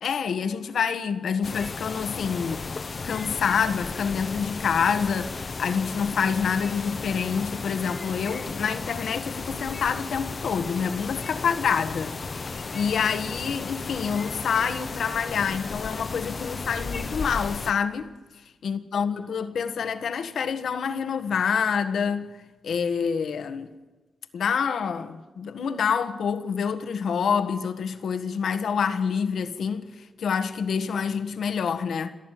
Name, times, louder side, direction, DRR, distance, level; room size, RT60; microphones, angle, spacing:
voice 1, 0.0-2.6 3.0-18.1 18.6-22.3 22.6-23.7 24.3-29.9 30.2-32.1, left 6 dB, 75° left, 1.5 m, -27 dB
sound 1, 1.4-17.7, left 4 dB, 45° left, 1.0 m, -34 dB
28.0 x 10.5 x 9.3 m
cardioid pair, 65°, 0 cm